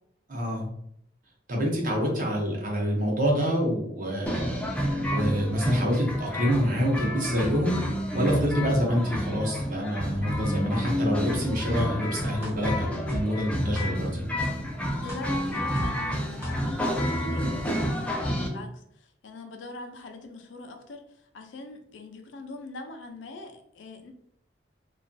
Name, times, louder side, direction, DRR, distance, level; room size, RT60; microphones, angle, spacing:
voice 1, 0.3-0.7 1.5-4.7 5.1-14.2, equal, 45° right, -1 dB, 0.7 m, -27 dB
sound 1, 4.3-18.5, equal, 5° left, 0.3 m, -29 dB
sound 2, 12.4-12.5 13.1-13.2 13.7-13.9 14.4-14.5 15.1-15.2 15.8-15.9 16.4-16.5, equal, 15° right, 0.8 m, -35 dB
voice 2, 15.0-24.1, left 3 dB, 90° left, 5 dB, 0.4 m, -42 dB
2.3 x 2.2 x 2.5 m, 0.70 s
head